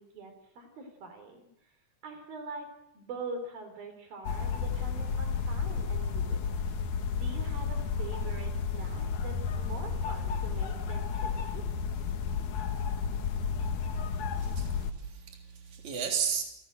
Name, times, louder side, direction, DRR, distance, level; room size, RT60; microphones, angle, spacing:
voice 1, 0.0-1.4 2.0-6.4 7.1-11.6, right 3 dB, 85° right, 6 dB, 6.0 m, -44 dB
sound 1, 4.2-14.9, left 6 dB, 60° left, 2.9 m, -32 dB
voice 2, 14.4-16.4, right 7 dB, 55° right, 2 dB, 4.8 m, -34 dB
29.0 x 18.0 x 8.0 m, 0.81 s
omnidirectional pair, 4.1 m